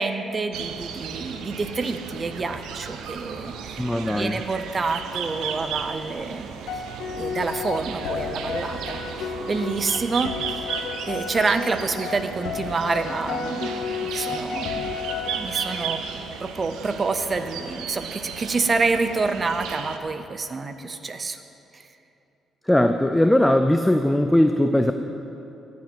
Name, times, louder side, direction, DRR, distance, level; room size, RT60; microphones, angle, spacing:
voice 1, 0.0-6.8 7.2-10.7 11.1-14.9 15.4-16.0 16.4-21.4 21.7-21.9, right 4 dB, 35° right, 9 dB, 0.7 m, -28 dB
sound 1, 0.5-20.0, right 7 dB, 85° right, 0.7 m, -35 dB
voice 2, 3.8-4.4 22.7-24.9, left 1 dB, 5° left, 7 dB, 0.5 m, -19 dB
sound 2, 6.7-16.0, left 6 dB, 80° left, 0.9 m, -32 dB
13.5 x 7.3 x 6.1 m, 2.9 s
cardioid pair, 90°, 0 cm